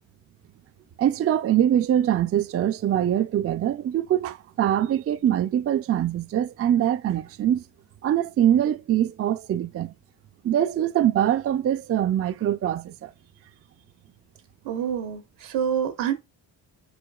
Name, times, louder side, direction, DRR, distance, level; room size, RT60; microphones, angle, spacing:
voice 1, 1.0-7.6 8.0-9.9 10.4-13.1, right 11 dB, 35° right, 0.4 m, -23 dB
voice 2, 14.6-16.1, right 8 dB, 85° right, 1.3 m, -27 dB
4.8 x 4.1 x 2.3 m
cardioid pair, 75°, 43 cm